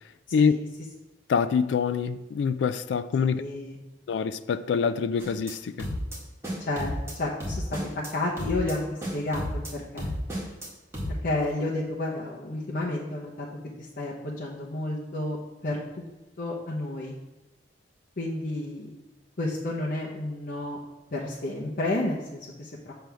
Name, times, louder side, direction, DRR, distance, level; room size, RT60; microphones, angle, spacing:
voice 1, 1.3-3.4 4.1-5.9, left 6 dB, 85° left, 0.3 m, -25 dB
voice 2, 3.3-3.8 6.7-7.7 8.1-8.8 9.1-10.1 11.2-13.5 13.8-15.4 15.6-16.1 16.4-17.1 18.2-18.9 19.4-20.8 21.1-22.9, left 2 dB, 50° left, 1.0 m, -31 dB
sound 1, 5.2-5.5 5.8-6.2 6.4-7.1 7.4-8.1 8.4-8.7 9.0-9.7 10.0-10.7 10.9-11.1, equal, 15° right, 1.9 m, -33 dB
7.5 x 3.4 x 6.2 m
head